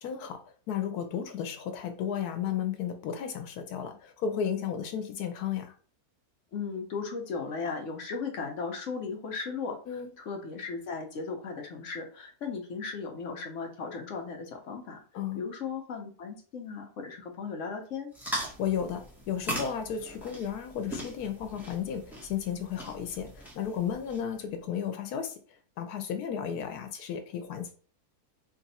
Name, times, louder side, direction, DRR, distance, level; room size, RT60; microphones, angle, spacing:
voice 1, 0.0-0.4 0.7-5.7 9.9-10.1 15.1-15.4 18.6-25.4 25.8-27.7, left 8 dB, 90° left, 7 dB, 1.2 m, -33 dB
voice 2, 6.5-9.8 10.2-15.0 15.3-18.1, left 5 dB, 60° left, 3 dB, 1.1 m, -36 dB
sound 1, 18.1-24.4, equal, ahead, 1.0 m, -40 dB
3.3 x 2.6 x 4.1 m, 0.40 s
omnidirectional pair, 1.6 m